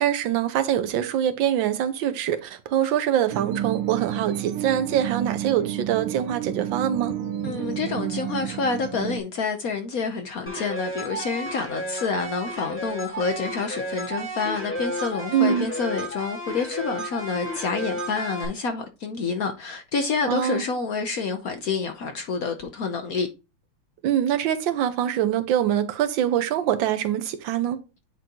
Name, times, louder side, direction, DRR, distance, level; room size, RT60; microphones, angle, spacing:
voice 1, 0.0-7.2 15.3-15.7 20.3-20.6 24.0-27.8, right 10 dB, 65° right, 1.4 m, -24 dB
sound 1, 3.3-9.2, right 11 dB, 85° right, 1.6 m, -30 dB
voice 2, 7.4-23.3, left 4 dB, 65° left, 0.8 m, -28 dB
sound 2, 10.5-18.5, equal, 5° left, 1.1 m, -32 dB
9.1 x 3.7 x 2.8 m
omnidirectional pair, 2.4 m